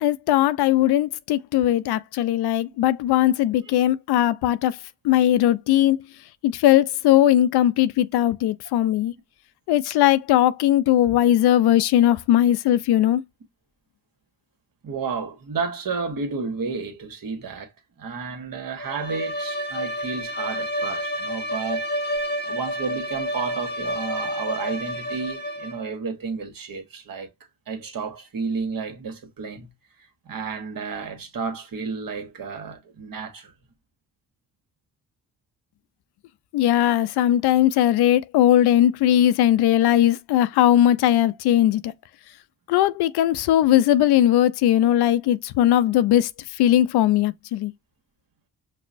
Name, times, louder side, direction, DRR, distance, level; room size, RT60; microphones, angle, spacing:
voice 1, 0.0-4.8 5.0-6.0 6.4-9.1 9.7-13.2 36.5-41.9 42.7-46.3 46.6-47.7, left 12 dB, 70° left, 0.5 m, -19 dB
voice 2, 14.8-17.7 18.0-21.8 22.4-27.3 27.7-29.7 30.2-33.5, right 5 dB, 55° right, 1.3 m, -31 dB
Bowed string instrument, 18.8-25.9, equal, 25° left, 0.8 m, -29 dB
5.3 x 2.1 x 2.5 m
supercardioid pair, 50°, 41 cm